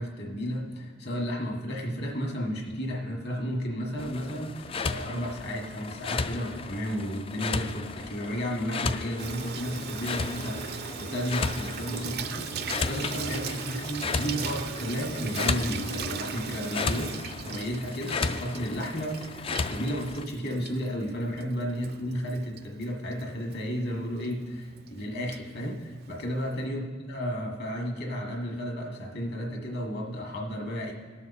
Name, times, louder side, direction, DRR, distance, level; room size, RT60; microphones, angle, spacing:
voice 1, 0.0-30.9, equal, 50° left, 0 dB, 1.7 m, -33 dB
sound 1, 4.0-20.3, left 4 dB, 25° left, 0.3 m, -34 dB
Water tap faucet / Sink (filling or washing), 9.2-26.7, right 6 dB, 50° right, 0.4 m, -39 dB
18.5 x 6.9 x 4.2 m, 1.5 s
head